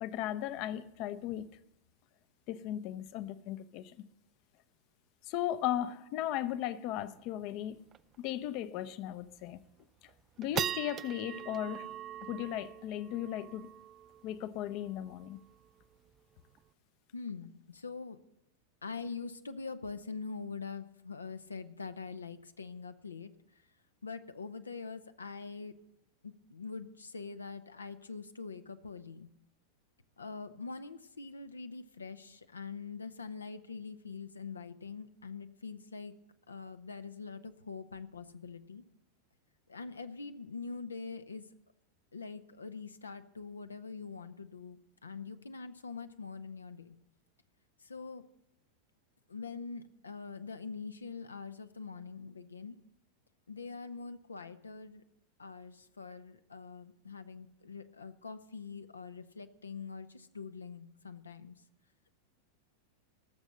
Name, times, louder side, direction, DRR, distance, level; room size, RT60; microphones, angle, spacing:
voice 1, 0.0-1.6 2.5-4.1 5.3-7.9 8.2-9.6 10.4-11.9 12.2-13.7 14.2-15.4, left 12 dB, 45° left, 0.7 m, -36 dB
sound 1, 7.0-7.1 7.4-7.5 7.9-8.2 8.6-8.7 9.3-9.6 10.1-16.7, right 10 dB, 30° right, 0.4 m, -42 dB
voice 2, 17.1-18.2 18.8-23.6 24.0-25.7 26.2-29.3 30.2-36.1 36.5-38.8 39.7-41.5 42.1-47.0 47.8-48.2 49.3-52.8 53.5-55.0 55.4-61.6, left 4 dB, 75° left, 0.8 m, -44 dB
18.0 x 7.2 x 6.5 m
figure-of-eight pair, 90°, 0 cm